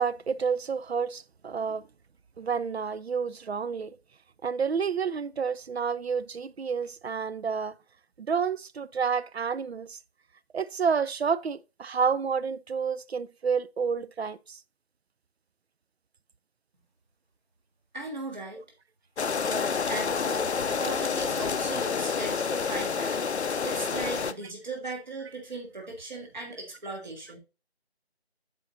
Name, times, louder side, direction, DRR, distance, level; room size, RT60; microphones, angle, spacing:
voice 1, 0.0-1.9 2.4-4.0 4.4-7.8 8.2-10.0 10.5-14.6, right 6 dB, 75° right, 0.5 m, -29 dB
voice 2, 17.9-18.6 19.4-23.2 23.6-27.4, right 2 dB, 45° right, 1.7 m, -38 dB
sound 1, 19.2-24.3, left 5 dB, 85° left, 0.6 m, -28 dB
10.5 x 4.5 x 2.6 m
figure-of-eight pair, 165°, 32 cm